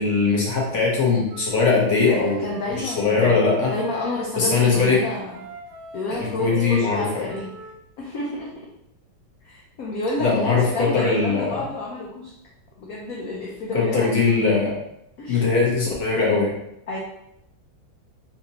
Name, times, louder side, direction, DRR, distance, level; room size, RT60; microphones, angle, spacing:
voice 1, 0.0-2.5 2.7-3.7 4.3-5.0 6.4-7.3 10.2-11.6 13.7-14.7 15.3-16.5, left 4 dB, 45° left, -5 dB, 1.1 m, -20 dB
Wind instrument woodwind instrument, 1.3-7.8, right 5 dB, 70° right, 1.1 m, -41 dB
voice 2, 2.1-5.4 5.9-7.5 8.0-8.7 9.4-12.3 12.8-14.4 15.2-15.5 16.9-17.0, left 2 dB, 90° left, -3 dB, 0.7 m, -30 dB
4.1 x 2.5 x 2.8 m, 0.80 s
omnidirectional pair, 2.2 m